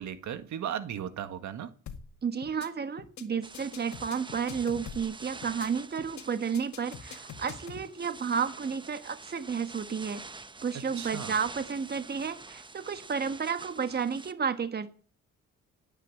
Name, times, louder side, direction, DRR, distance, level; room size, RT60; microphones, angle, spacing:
voice 1, 0.0-1.7 11.0-11.3, right 9 dB, 70° right, 10 dB, 1.7 m, -36 dB
sound 1, 1.9-2.1 2.4-2.7 3.0-3.2 3.5-5.1 5.4-5.7 6.0-6.2 6.5-7.8, left 8 dB, 65° left, 2.0 m, -44 dB
voice 2, 2.2-10.2 10.6-14.9, right 6 dB, 35° right, 10 dB, 1.3 m, -32 dB
sound 2, 3.4-14.3, right 3 dB, 15° right, 0.8 m, -46 dB
17.0 x 9.2 x 7.5 m, 0.41 s
cardioid pair, 90°, 30 cm